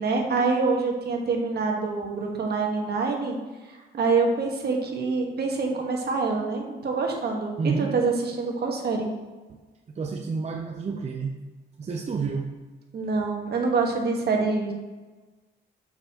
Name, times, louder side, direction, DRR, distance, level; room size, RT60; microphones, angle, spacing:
voice 1, 0.0-3.4 3.9-9.1 12.9-14.7, right 4 dB, 55° right, 1 dB, 1.4 m, -26 dB
voice 2, 7.6-7.9 10.0-11.4 11.8-12.5, right 4 dB, 35° right, 1 dB, 0.6 m, -29 dB
6.7 x 5.5 x 2.9 m, 1.3 s
cardioid pair, 90°, 20 cm